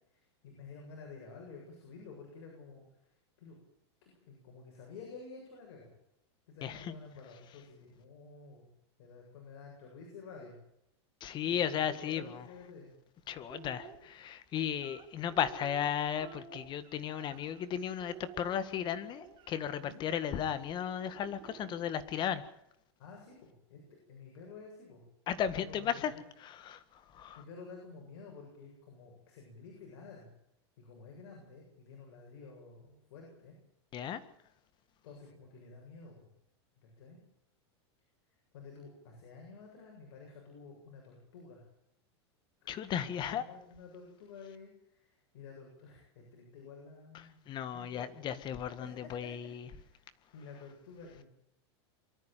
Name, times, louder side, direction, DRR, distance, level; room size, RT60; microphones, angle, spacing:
voice 1, 0.1-3.6 4.0-5.9 6.5-8.7 9.0-10.6 11.5-12.9 19.8-20.0 23.0-25.0 25.4-26.2 27.4-30.3 30.8-33.6 35.0-36.3 36.8-37.2 38.5-41.6 42.6-42.7 43.0-47.4 47.7-48.4 48.8-48.9 49.2-49.3 49.7-50.0 50.3-51.3, left 4 dB, 65° left, 0 dB, 7.7 m, -51 dB
voice 2, 6.6-6.9 11.2-12.5 13.3-22.4 25.3-26.1 26.4-27.4 33.9-34.2 42.7-43.4 47.1-49.7, left 9 dB, 30° left, 12 dB, 1.8 m, -35 dB
sound 1, 13.4-14.0 14.7-17.7 18.0-19.5 20.7-22.1, right 8 dB, 35° right, 3.1 m, -52 dB
24.0 x 13.5 x 9.2 m, 0.81 s
supercardioid pair, 135°, 14 cm